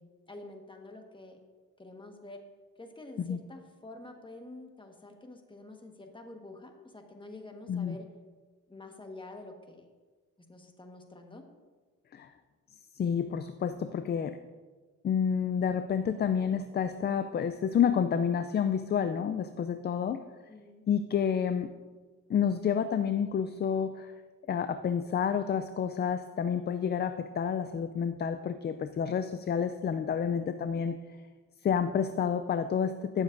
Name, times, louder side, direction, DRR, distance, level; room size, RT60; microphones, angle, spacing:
voice 1, 0.0-1.4 1.8-2.4 2.8-8.1 8.7-9.8 10.5-11.4 20.5-20.8 21.3-21.7, left 2 dB, 15° left, 4 dB, 1.4 m, -48 dB
voice 2, 13.0-14.4 15.0-20.2 20.9-21.7 22.3-24.1 24.5-31.0 31.6-33.2, left 7 dB, 35° left, 10 dB, 0.4 m, -29 dB
16.5 x 7.2 x 2.6 m, 1.4 s
cardioid pair, 90°, 30 cm